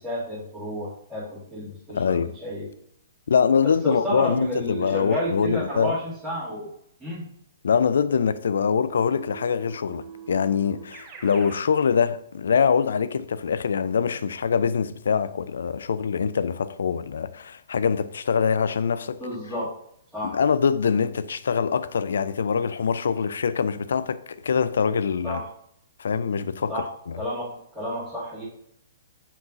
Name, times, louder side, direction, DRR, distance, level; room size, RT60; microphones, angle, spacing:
voice 1, 0.0-2.7 3.6-6.7 7.0-7.3 19.2-19.7 20.1-20.4 25.2-25.5 26.7-26.9 27.2-28.5, equal, ahead, 2.6 m, -31 dB
voice 2, 1.9-2.3 3.3-5.9 7.6-19.2 20.2-25.4 26.0-27.2, left 6 dB, 60° left, 0.4 m, -24 dB
Keyboard (musical), 8.9-11.6, right 6 dB, 30° right, 1.2 m, -43 dB
7.2 x 5.4 x 2.7 m
figure-of-eight pair, 115°, 0 cm